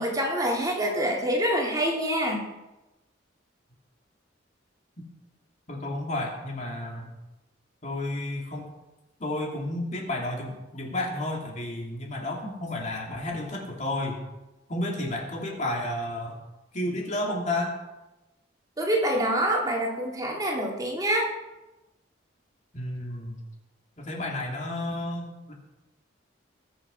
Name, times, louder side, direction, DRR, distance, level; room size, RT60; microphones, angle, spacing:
voice 1, 0.0-2.5 18.8-21.3, right 1 dB, 20° right, -1 dB, 2.1 m, -26 dB
voice 2, 5.7-7.1 7.8-8.7 9.2-14.2 14.7-16.4 16.7-17.7 22.7-23.4 24.0-25.5, left 1 dB, 40° left, 0 dB, 2.8 m, -31 dB
21.0 x 7.1 x 5.5 m, 1.0 s
head